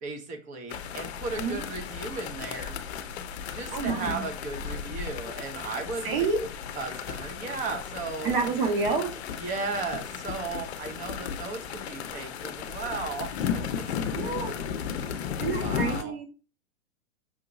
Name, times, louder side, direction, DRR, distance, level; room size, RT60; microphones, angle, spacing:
voice 1, 0.0-2.8 3.5-6.3 6.8-8.3 9.4-13.8 15.5-16.1, right 4 dB, 20° right, 5 dB, 0.7 m, -36 dB
sound 1, 0.7-16.0, left 7 dB, 55° left, 0.7 m, -35 dB
voice 2, 3.7-4.2 6.0-6.4 8.2-9.1 14.1-14.5 15.4-16.3, right 4 dB, 45° right, 2 dB, 1.4 m, -28 dB
5.8 x 2.8 x 2.6 m, 0.35 s
figure-of-eight pair, 115°, 40 cm